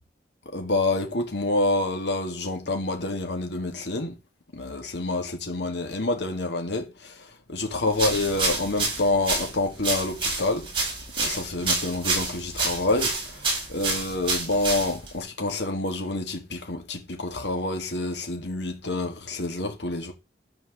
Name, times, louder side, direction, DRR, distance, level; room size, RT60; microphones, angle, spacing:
voice 1, 0.5-4.1 4.5-10.7 11.2-20.1, left 2 dB, 80° left, 2.0 m, -28 dB
sound 1, 7.9-15.2, right 3 dB, 30° right, 5.7 m, -28 dB
11.0 x 4.6 x 7.4 m
head